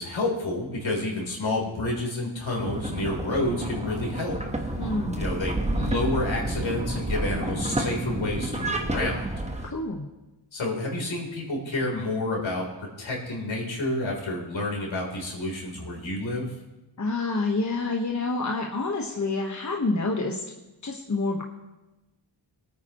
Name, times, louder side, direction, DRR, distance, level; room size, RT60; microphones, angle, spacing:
voice 1, 0.0-4.7 5.2-9.3 10.5-16.5, left 2 dB, 70° left, -2 dB, 3.8 m, -29 dB
sound 1, 2.6-9.7, right 1 dB, 15° right, 1.2 m, -30 dB
voice 2, 4.8-5.3 9.7-10.1 17.0-20.4 20.8-21.4, left 3 dB, 35° left, 0 dB, 1.3 m, -28 dB
23.0 x 9.2 x 3.1 m, 1.0 s
wide cardioid pair, 85°, 48 cm